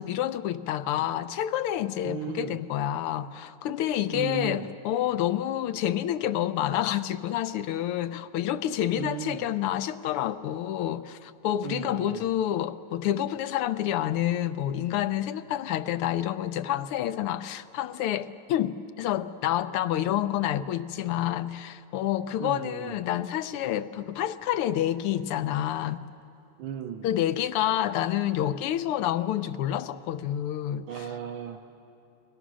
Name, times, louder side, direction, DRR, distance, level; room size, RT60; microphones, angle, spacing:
voice 1, 0.0-26.0 27.0-31.1, left 11 dB, 90° left, 1.7 m, -28 dB
voice 2, 2.0-2.6 4.1-4.7 8.9-9.4 11.6-12.3 22.4-22.9 26.6-27.1 30.9-31.6, right 9 dB, 70° right, 1.7 m, -35 dB
30.0 x 22.5 x 6.2 m
omnidirectional pair, 2.4 m